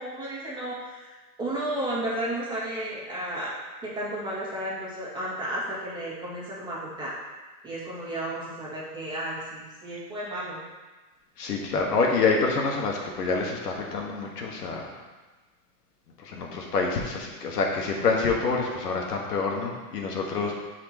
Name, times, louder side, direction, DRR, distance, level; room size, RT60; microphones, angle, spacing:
voice 1, 0.0-3.6 3.8-7.1 7.6-10.6 20.4-20.5, right 1 dB, 10° right, -8 dB, 2.2 m, -33 dB
voice 2, 11.4-14.9 16.2-20.5, left 4 dB, 80° left, 0 dB, 1.7 m, -27 dB
11.5 x 5.0 x 3.0 m, 1.2 s
hypercardioid pair, 140°, 46 cm